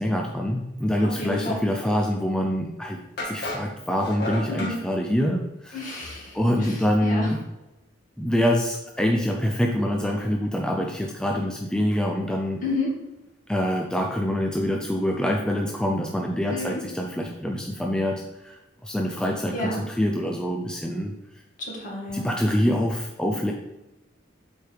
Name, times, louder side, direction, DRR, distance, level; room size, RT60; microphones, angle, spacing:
voice 1, 0.0-3.0 3.3-6.0 6.3-7.4 8.2-12.6 13.5-21.1 22.1-23.5, equal, 5° left, 1 dB, 0.4 m, -25 dB
voice 2, 1.0-1.6 4.5-4.8 5.7-7.3 12.6-12.9 16.5-16.8 19.5-19.8 21.6-22.3, left 2 dB, 45° left, -3 dB, 2.2 m, -31 dB
sound 1, 3.2-4.8, left 1 dB, 60° left, 1.6 m, -33 dB
8.1 x 4.5 x 3.5 m, 1.0 s
head